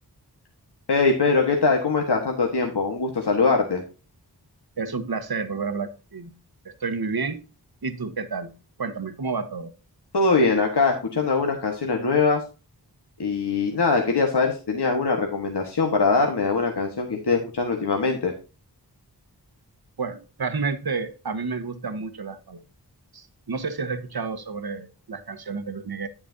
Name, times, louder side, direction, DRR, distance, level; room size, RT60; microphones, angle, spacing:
voice 1, 0.9-3.8 10.1-12.4 13.2-18.3, left 4 dB, 70° left, 1.4 m, -22 dB
voice 2, 4.8-6.3 6.6-7.4 7.8-8.5 8.8-9.7 20.0-22.6 23.1-26.1, right 4 dB, 60° right, 1.1 m, -30 dB
9.5 x 8.7 x 2.6 m
wide cardioid pair, 60°, 41 cm